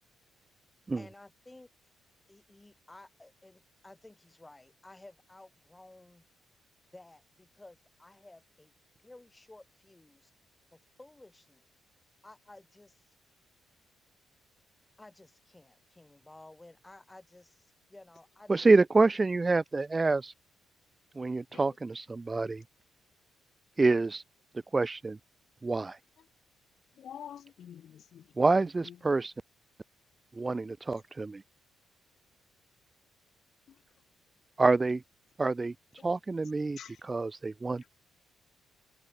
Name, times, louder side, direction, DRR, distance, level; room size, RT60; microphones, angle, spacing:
voice 1, 1.0-1.7 2.3-6.2 6.9-8.7 9.0-10.3 10.7-11.6 12.2-13.0 15.0-18.7 19.1-19.2, left 2 dB, 15° left, 5.5 m, -54 dB
voice 2, 18.5-20.3 21.2-22.6 23.8-24.2 24.7-25.2 25.6-26.0 28.4-29.3 30.4-31.4 34.6-35.0 35.4-35.7 36.0-36.8 37.0-37.8, right 3 dB, 25° right, 0.7 m, -27 dB
voice 3, 27.0-28.3 28.8-29.0 33.7-33.8 36.8-37.0, left 9 dB, 65° left, 6.0 m, -47 dB
cardioid pair, 90°, 0 cm